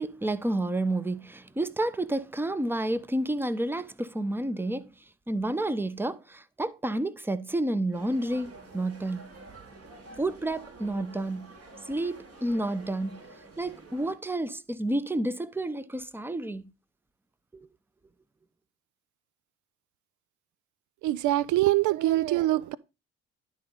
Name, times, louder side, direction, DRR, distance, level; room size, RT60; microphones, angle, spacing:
voice 1, 0.0-4.9 5.3-9.3 10.2-11.5 11.9-13.2 13.6-16.6 17.5-17.7, right 1 dB, 5° right, 0.8 m, -30 dB
sound 1, 7.9-14.1, right 2 dB, 50° right, 4.3 m, -49 dB
voice 2, 21.0-22.8, right 16 dB, 65° right, 0.5 m, -24 dB
11.5 x 3.9 x 5.4 m
hypercardioid pair, 65°, 32 cm